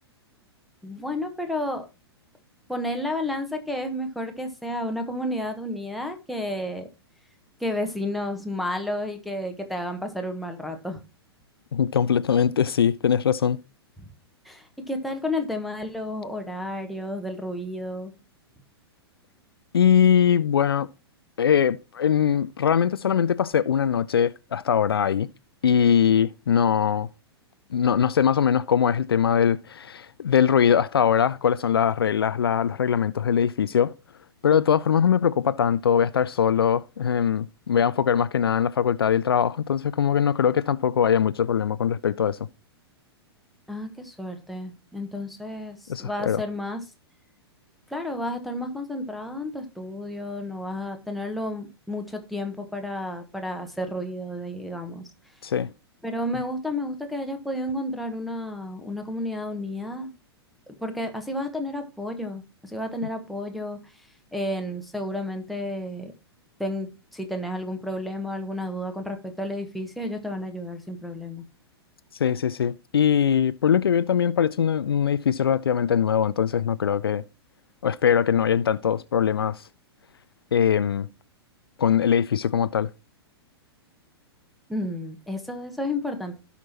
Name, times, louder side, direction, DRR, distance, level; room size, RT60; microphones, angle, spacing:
voice 1, 0.8-1.9 2.7-6.9 7.6-11.0 14.4-18.1 43.7-46.8 47.9-55.0 56.0-60.1 60.8-63.8 64.3-66.1 66.6-71.4 84.7-86.4, left 1 dB, ahead, 1.3 m, -31 dB
voice 2, 11.7-13.6 19.7-20.9 21.4-25.3 25.6-27.1 27.7-33.9 34.4-42.5 45.9-46.4 55.4-55.7 72.2-77.2 77.8-79.6 80.5-81.1 81.8-82.9, left 8 dB, 65° left, 0.4 m, -22 dB
16.5 x 5.8 x 2.9 m
figure-of-eight pair, 105°, 14 cm